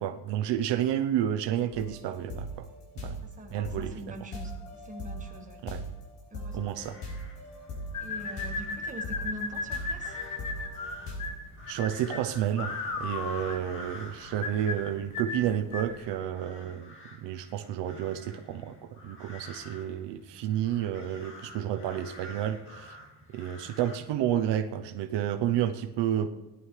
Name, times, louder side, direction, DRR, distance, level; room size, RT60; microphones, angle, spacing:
voice 1, 0.0-2.7 3.0-3.2 3.5-3.9 5.7-5.8 6.5-6.9 11.7-16.9 17.2-23.0 23.3-26.3, right 10 dB, 70° right, 8 dB, 0.8 m, -30 dB
sound 1, 1.7-11.3, equal, 80° left, 5.2 m, -40 dB
voice 2, 3.2-5.6 6.3-6.8 8.0-10.2 13.5-13.7, right 1 dB, 15° right, 1 dB, 1.6 m, -43 dB
sound 2, 6.5-24.0, left 1 dB, 30° left, 2.0 m, -49 dB
sound 3, 7.9-16.0, left 4 dB, 45° left, 1.4 m, -36 dB
17.0 x 11.0 x 3.2 m, 1.1 s
cardioid pair, 160°, 43 cm